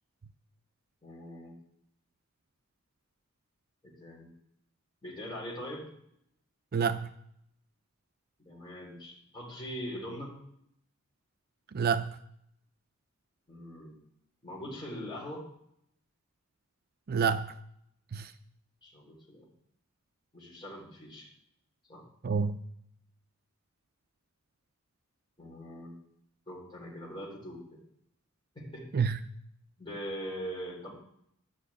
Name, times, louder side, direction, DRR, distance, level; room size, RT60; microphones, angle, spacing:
voice 1, 1.0-1.5 3.8-4.3 5.0-5.9 8.4-10.3 13.5-14.0 14.4-15.5 18.8-19.5 20.3-21.3 21.8-22.0 25.4-25.9 26.5-27.8 28.6-28.9 29.8-30.9, equal, 25° left, -5 dB, 3.5 m, -42 dB
voice 2, 6.7-7.1 11.7-12.2 17.1-17.5 18.1-18.3 22.2-22.6 28.9-29.2, right 6 dB, 45° right, 10 dB, 0.5 m, -28 dB
12.0 x 6.2 x 8.4 m, 0.73 s
head